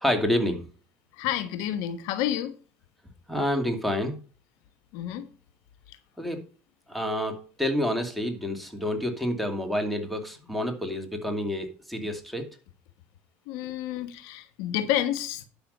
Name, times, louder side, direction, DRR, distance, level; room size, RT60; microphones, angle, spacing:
voice 1, 0.0-0.6 3.3-4.2 6.2-6.4 6.9-12.5, left 1 dB, ahead, 2.4 m, -28 dB
voice 2, 1.1-2.5 4.9-5.3 13.5-15.4, left 11 dB, 75° left, 1.3 m, -29 dB
11.5 x 6.1 x 5.3 m
supercardioid pair, 80°, 6 cm